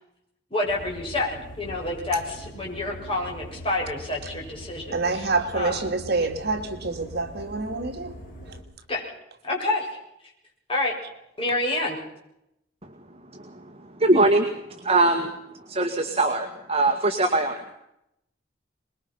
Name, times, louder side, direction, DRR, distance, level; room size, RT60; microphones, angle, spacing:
voice 1, 0.5-5.3 5.5-5.8 8.9-9.0 9.4-9.9 10.7-10.9 11.4-12.0, left 2 dB, 30° left, 7.3 m, -28 dB
sound 1, 0.6-8.6, equal, 45° left, 5.6 m, -42 dB
voice 2, 4.9-8.2 8.4-8.6, right 3 dB, 55° right, 2.7 m, -27 dB
voice 3, 13.3-15.3 15.7-17.7, right 2 dB, 30° right, 2.1 m, -22 dB
25.0 x 22.0 x 5.8 m
head